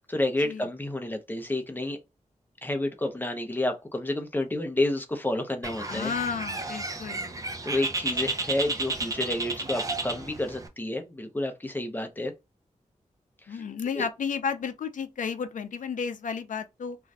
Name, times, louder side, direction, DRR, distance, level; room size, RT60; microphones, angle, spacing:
voice 1, 0.1-2.0 2.6-6.1 7.6-12.3 13.4-13.6 13.9-14.1, left 1 dB, 15° left, 0.6 m, -30 dB
Bird, 5.6-10.7, right 2 dB, 25° right, 0.6 m, -32 dB
voice 2, 5.9-7.4 13.5-17.0, left 6 dB, 85° left, 0.5 m, -32 dB
2.6 x 2.3 x 3.2 m
wide cardioid pair, 105°, 13 cm